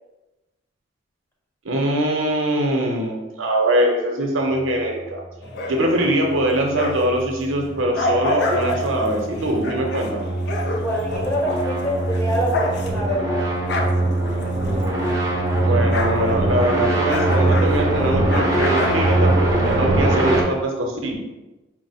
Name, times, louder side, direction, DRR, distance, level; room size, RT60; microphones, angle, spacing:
voice 1, 1.6-5.2 5.7-10.3 15.6-21.2, right 1 dB, 75° right, 1 dB, 0.7 m, -22 dB
sound 1, 5.4-7.2 7.6-15.2 15.5-19.8, left 2 dB, 55° left, 0.5 m, -29 dB
sound 2, 5.9-20.4, right 2 dB, 15° right, 0.6 m, -22 dB
voice 2, 10.7-13.4, equal, 10° left, -4 dB, 0.9 m, -25 dB
4.6 x 2.1 x 4.1 m, 1.0 s
head